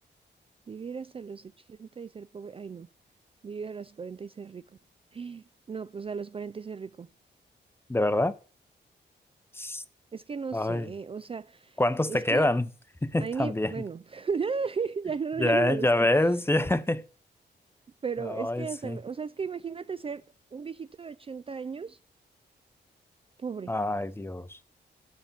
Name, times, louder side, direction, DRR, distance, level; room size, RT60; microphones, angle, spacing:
voice 1, 0.7-2.9 3.4-4.7 5.1-7.1 10.1-11.8 12.1-12.5 13.2-15.9 18.0-20.2 20.5-22.0 23.4-23.8, right 5 dB, 30° right, 0.4 m, -35 dB
voice 2, 7.9-8.3 9.5-9.8 10.5-10.9 11.8-12.7 13.0-13.7 15.4-17.0 18.2-19.0 23.7-24.6, left 1 dB, 10° left, 0.7 m, -26 dB
7.1 x 6.7 x 7.2 m
cardioid pair, 105°, 19 cm